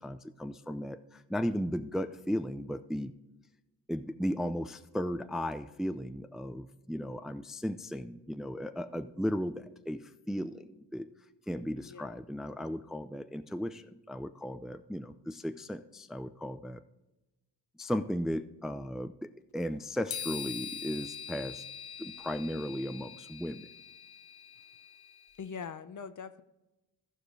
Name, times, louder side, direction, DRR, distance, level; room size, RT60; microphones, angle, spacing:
voice 1, 0.0-3.1 3.9-11.1 11.5-16.8 17.8-21.6 22.0-23.7, equal, ahead, 10 dB, 0.4 m, -36 dB
voice 2, 11.8-12.1 25.4-26.4, left 6 dB, 50° left, 12 dB, 0.8 m, -42 dB
sound 1, 20.1-25.4, left 7 dB, 65° left, 1.1 m, -43 dB
14.5 x 5.0 x 4.8 m, 1.0 s
cardioid pair, 60°, 40 cm